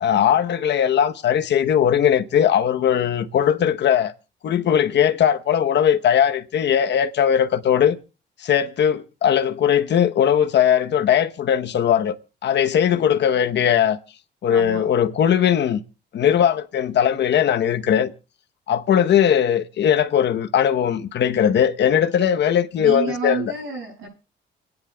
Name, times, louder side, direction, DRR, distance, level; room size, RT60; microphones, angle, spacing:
voice 1, 0.0-4.1 4.4-8.0 8.4-12.2 12.4-14.0 14.4-15.8 16.1-18.1 18.7-23.4, left 9 dB, 60° left, 0.9 m, -19 dB
voice 2, 14.5-14.9 22.8-24.1, right 5 dB, 85° right, 7.1 m, -30 dB
28.5 x 9.8 x 2.3 m
cardioid pair, 90°, 20 cm